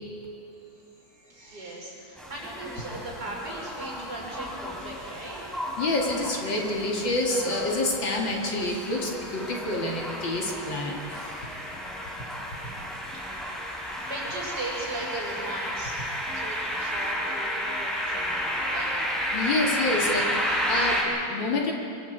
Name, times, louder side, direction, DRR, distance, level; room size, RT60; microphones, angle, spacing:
voice 1, 0.6-5.5 12.4-16.0 16.3-18.9 20.7-20.8, right 2 dB, 50° right, -3 dB, 6.4 m, -39 dB
sound 1, 2.2-21.0, equal, ahead, 4.2 m, -32 dB
voice 2, 5.8-11.4 19.3-21.7, left 2 dB, 60° left, -1 dB, 3.1 m, -28 dB
26.0 x 24.0 x 4.7 m, 2.6 s
omnidirectional pair, 2.3 m